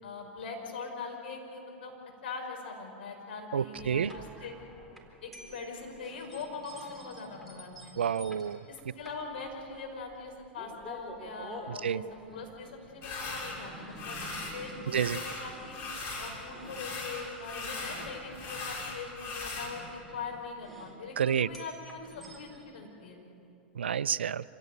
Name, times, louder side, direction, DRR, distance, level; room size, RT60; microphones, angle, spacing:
voice 1, 0.0-1.9 2.2-4.5 5.2-8.0 8.7-14.2 14.5-15.8 16.2-23.2, left 4 dB, 70° left, 2 dB, 5.4 m, -42 dB
voice 2, 3.5-4.1 8.0-8.6 11.8-12.0 14.9-15.2 21.2-21.5 23.8-24.4, right 8 dB, 80° right, 18 dB, 0.5 m, -29 dB
sound 1, 3.7-22.6, right 1 dB, 5° left, 4.0 m, -51 dB
sound 2, 13.0-13.6 14.0-14.6 14.9-16.4 16.6-19.7, left 3 dB, 45° left, 5.5 m, -38 dB
26.0 x 17.5 x 9.3 m, 2.8 s
hypercardioid pair, 100°, 6 cm